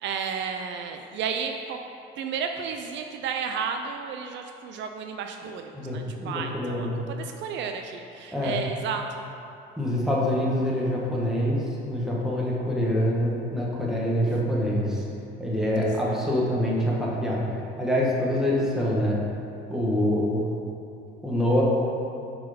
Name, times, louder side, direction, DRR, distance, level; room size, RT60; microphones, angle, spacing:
voice 1, 0.0-1.8 2.2-9.0 14.3-14.4 15.8-16.2, right 6 dB, 60° right, 4 dB, 0.5 m, -33 dB
voice 2, 5.7-6.9 8.3-8.5 9.8-15.0 15.4-17.4 17.8-19.2 19.7-20.4 21.2-21.6, equal, ahead, -5 dB, 1.3 m, -25 dB
7.9 x 4.6 x 5.1 m, 2.7 s
cardioid pair, 145°, 21 cm